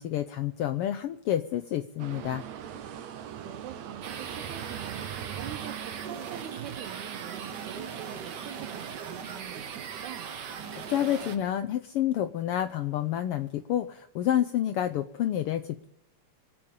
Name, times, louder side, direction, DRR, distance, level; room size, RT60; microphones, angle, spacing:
voice 1, 0.0-2.4 10.8-15.9, left 11 dB, 80° left, 9 dB, 1.3 m, -29 dB
sound 1, 2.0-11.5, right 9 dB, 70° right, 2.3 m, -42 dB
voice 2, 3.4-10.4, right 10 dB, 85° right, 9 dB, 2.4 m, -44 dB
sound 2, 4.0-11.4, right 7 dB, 55° right, 1.2 m, -39 dB
24.5 x 8.7 x 5.2 m, 0.78 s
omnidirectional pair, 3.3 m